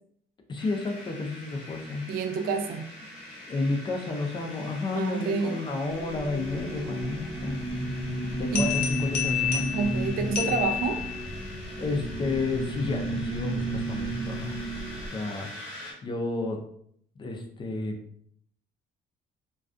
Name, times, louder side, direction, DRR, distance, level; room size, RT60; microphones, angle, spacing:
voice 1, 0.5-2.1 3.5-7.6 8.3-9.8 11.8-14.5 15.1-15.5 16.0-16.6 17.2-18.0, left 3 dB, 30° left, 3 dB, 0.4 m, -31 dB
sound 1, 0.6-15.9, left 1 dB, 5° left, 1.0 m, -44 dB
voice 2, 2.1-2.9 4.9-5.6 8.5-8.7 9.7-11.0, right 4 dB, 65° right, 6 dB, 0.4 m, -28 dB
sound 2, 5.9-15.1, right 1 dB, 20° right, 0.6 m, -33 dB
sound 3, 8.6-11.5, left 9 dB, 80° left, 0.6 m, -30 dB
2.3 x 2.3 x 2.4 m, 0.66 s
cardioid pair, 110°, 17 cm